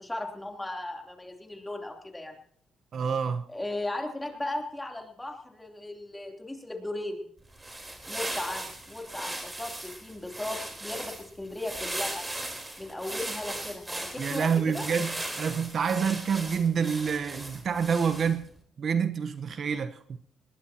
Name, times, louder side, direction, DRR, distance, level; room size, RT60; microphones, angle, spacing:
voice 1, 0.0-2.3 3.5-7.2 8.1-12.2 12.8-14.8, left 2 dB, 10° left, 3.2 m, -36 dB
voice 2, 2.9-3.4 14.2-18.5 18.8-20.2, right 6 dB, 55° right, 1.0 m, -28 dB
sound 1, 7.4-18.5, right 1 dB, 15° right, 3.8 m, -38 dB
20.0 x 19.0 x 2.9 m
cardioid pair, 90°, 0 cm